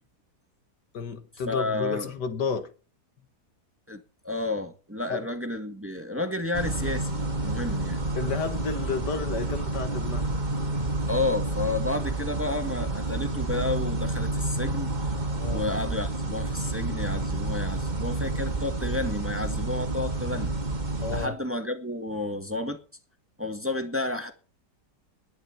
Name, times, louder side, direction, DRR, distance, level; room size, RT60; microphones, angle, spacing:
voice 1, 0.9-2.7 5.1-5.3 6.1-6.2 8.2-10.4 15.3-15.7 21.0-21.3, left 5 dB, 80° left, 2.2 m, -32 dB
voice 2, 1.5-2.1 3.9-8.0 11.1-14.9 15.5-20.5 21.1-22.8 23.4-24.3, left 2 dB, 10° right, 1.7 m, -31 dB
sound 1, 6.5-21.3, right 2 dB, 25° right, 1.8 m, -29 dB
20.5 x 9.9 x 4.5 m
omnidirectional pair, 1.8 m